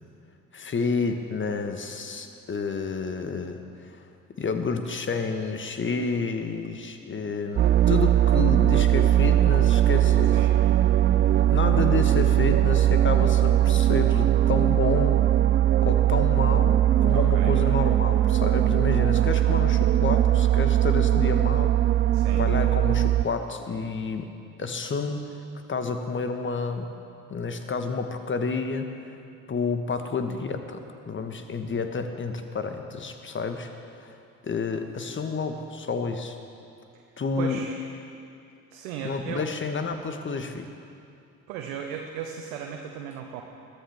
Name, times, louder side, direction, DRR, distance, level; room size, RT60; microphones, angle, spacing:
voice 1, 0.5-4.0 4.4-10.4 11.5-15.2 15.8-21.7 22.4-24.3 24.6-25.4 25.7-26.9 27.3-29.1 29.5-34.2 34.4-36.4 37.2-37.6 39.0-40.7, left 4 dB, 30° left, 7 dB, 1.4 m, -30 dB
sound 1, 7.6-23.2, right 12 dB, 25° right, 0.4 m, -20 dB
voice 2, 17.1-17.5 22.1-22.4 37.1-37.8 38.7-39.5 41.5-43.4, right 8 dB, 65° right, 2 dB, 1.1 m, -36 dB
21.5 x 13.5 x 3.5 m, 2.5 s
figure-of-eight pair, 55°, 41 cm